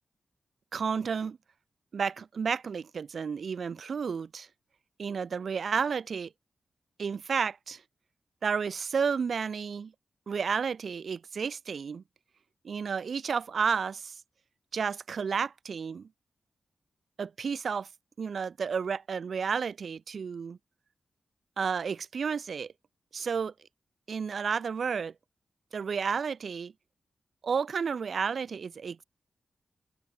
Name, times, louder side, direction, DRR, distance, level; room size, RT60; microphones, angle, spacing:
voice 1, 0.7-1.4 1.9-4.5 5.0-6.3 7.0-7.8 8.4-9.9 10.3-12.0 12.6-14.2 14.7-16.1 17.2-17.9 18.2-20.6 21.6-22.7 23.1-23.5 24.1-25.1 25.7-26.7 27.4-29.0, right 6 dB, 70° right, 0.5 m, -31 dB
cardioid pair, 70°, 0 cm